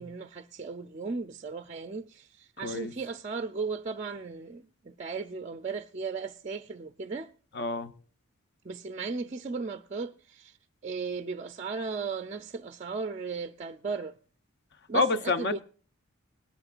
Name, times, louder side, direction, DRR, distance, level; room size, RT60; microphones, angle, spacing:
voice 1, 0.0-7.3 8.6-10.6 10.8-14.2 14.9-15.6, right 4 dB, 30° right, 0.4 m, -36 dB
voice 2, 2.6-2.9 7.5-7.9 14.9-15.6, left 3 dB, 50° left, 0.8 m, -28 dB
20.0 x 11.0 x 2.4 m
head